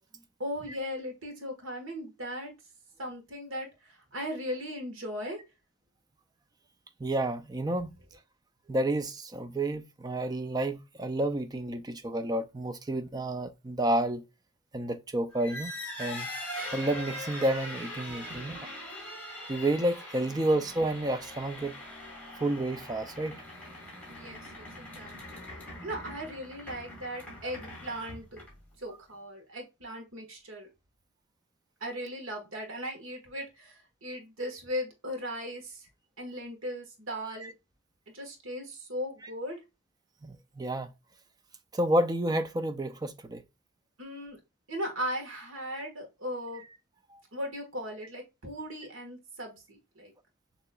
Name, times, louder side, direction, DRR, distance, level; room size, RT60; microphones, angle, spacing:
voice 1, 0.4-2.5 3.0-5.4 18.3-18.5 20.3-20.5 24.1-25.4 25.8-28.4 28.8-30.7 31.8-35.9 36.2-37.5 38.1-39.6 44.0-44.4 44.7-46.7 47.3-50.1, equal, 75° right, 1.5 m, -38 dB
voice 2, 7.0-7.9 8.7-14.2 14.7-15.7 16.0-16.3 16.7-18.7 19.5-21.7 22.4-23.3 37.4-37.5 39.2-39.3 40.2-40.9 41.7-43.4 47.1-47.2, right 1 dB, 20° right, 0.4 m, -30 dB
sound 1, 15.3-28.7, left 1 dB, 10° left, 1.9 m, -42 dB
6.7 x 3.0 x 2.3 m
head